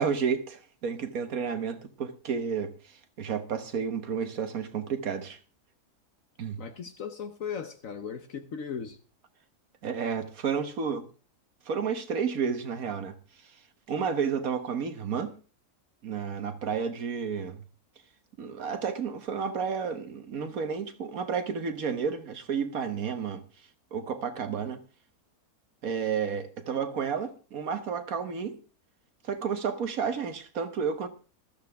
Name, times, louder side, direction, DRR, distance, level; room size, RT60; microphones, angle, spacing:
voice 1, 0.0-5.4 6.4-6.6 9.8-11.1 11.6-13.2 13.9-15.3 16.0-17.6 18.4-23.4 23.9-24.8 25.8-28.6 29.2-31.1, right 6 dB, 70° right, 1.7 m, -31 dB
voice 2, 6.6-9.0, left 6 dB, 65° left, 1.3 m, -37 dB
14.0 x 13.5 x 3.5 m
omnidirectional pair, 1.6 m